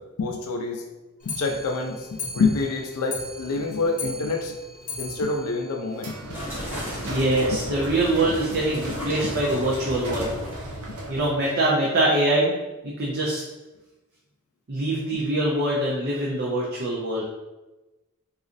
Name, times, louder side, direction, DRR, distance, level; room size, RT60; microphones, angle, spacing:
voice 1, 0.2-0.8 1.3-2.0 2.3-4.5 5.0-6.4 15.1-15.2, left 3 dB, 85° left, 2 dB, 0.4 m, -26 dB
Clock, 1.2-6.7 7.0-7.1 7.4-7.5 7.8-7.9 8.2-8.3 9.0-9.1 9.8-9.9 10.6-10.7, left 3 dB, 40° left, 0.6 m, -38 dB
sound 1, 5.9-11.4, equal, 85° right, 0.7 m, -35 dB
sound 2, 6.3-10.9, equal, 10° right, 0.8 m, -36 dB
voice 2, 7.0-10.3 11.1-12.5 12.8-13.4 14.7-17.2, right 1 dB, 50° right, -4 dB, 0.5 m, -24 dB
4.0 x 2.4 x 2.5 m, 1.1 s
head